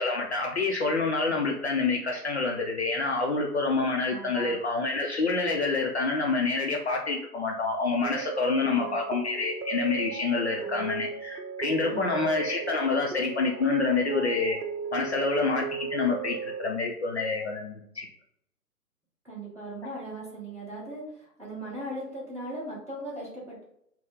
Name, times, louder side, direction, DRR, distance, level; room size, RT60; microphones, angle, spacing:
voice 1, 0.0-14.6 14.9-18.1, left 3 dB, 45° left, 0 dB, 0.5 m, -27 dB
voice 2, 4.1-4.5 8.6-9.0 10.5-10.9 11.8-12.2 19.2-23.6, right 1 dB, 5° right, -10 dB, 1.2 m, -39 dB
sound 1, 8.0-16.7, right 6 dB, 70° right, 0.7 m, -36 dB
4.1 x 2.1 x 3.6 m, 0.74 s
figure-of-eight pair, 135°, 47 cm